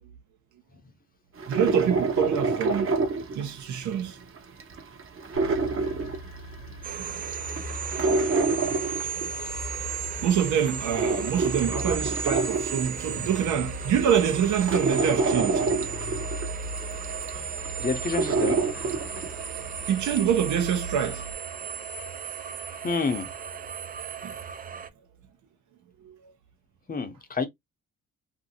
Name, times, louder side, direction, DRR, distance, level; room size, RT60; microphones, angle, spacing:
sound 1, 1.4-4.0 4.4-6.7 7.1-9.7 10.2-13.3 13.8-13.9 14.3-19.5 19.8-19.9, right 3 dB, 45° right, 0.9 m, -27 dB
voice 1, 1.5-2.9 3.3-4.2 6.9-7.1 7.4-7.5 10.2-15.6 19.9-21.2 24.2-24.3 26.0-26.2, right 8 dB, 75° right, 0.8 m, -26 dB
sound 2, 5.3-21.3, left 1 dB, 85° left, 0.6 m, -40 dB
sound 3, 6.8-24.9, right 7 dB, 30° right, 0.4 m, -35 dB
voice 2, 17.8-18.6 22.8-23.3 26.9-27.5, left 4 dB, 30° left, 0.7 m, -28 dB
2.7 x 2.5 x 2.7 m
cardioid pair, 90°, 30 cm